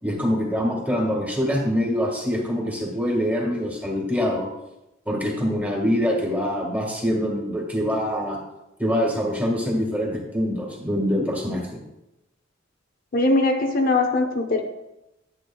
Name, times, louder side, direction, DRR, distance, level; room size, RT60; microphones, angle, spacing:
voice 1, 0.0-4.5 5.0-8.4 8.8-11.8, equal, 10° right, -1 dB, 1.7 m, -24 dB
voice 2, 13.1-14.6, left 2 dB, 45° left, 4 dB, 0.6 m, -21 dB
10.5 x 8.0 x 2.3 m, 0.93 s
head